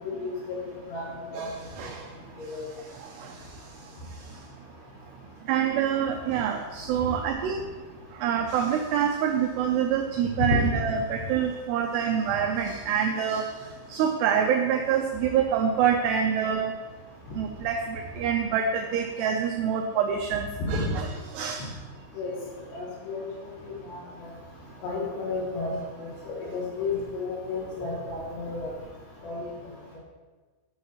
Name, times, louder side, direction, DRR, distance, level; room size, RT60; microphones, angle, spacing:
voice 1, 0.1-0.6 0.9-1.1 1.3-1.4 2.4-2.6 10.4-10.6 20.7-20.8 22.2-22.3 22.7-23.3 23.6-24.0 24.8-28.7 29.2-29.5, left 3 dB, 65° left, -5 dB, 4.5 m, -31 dB
voice 2, 1.4-2.1 2.8-4.4 5.5-7.7 8.1-16.7 17.3-21.1 21.3-21.7, right 8 dB, 85° right, 3 dB, 2.4 m, -27 dB
11.0 x 9.7 x 3.0 m, 1.3 s
omnidirectional pair, 5.5 m